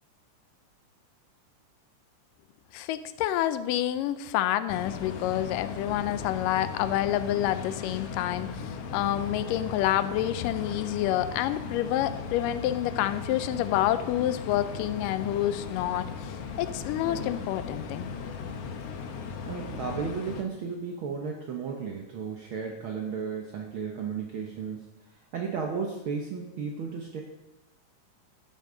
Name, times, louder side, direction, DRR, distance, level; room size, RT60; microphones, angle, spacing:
voice 1, 2.7-18.1, left 12 dB, 90° left, 12 dB, 2.2 m, -28 dB
sound 1, 4.7-20.4, left 5 dB, 65° left, 1.6 m, -37 dB
voice 2, 19.5-27.2, right 5 dB, 70° right, 1 dB, 1.2 m, -34 dB
13.0 x 9.2 x 3.9 m, 1.0 s
omnidirectional pair, 3.8 m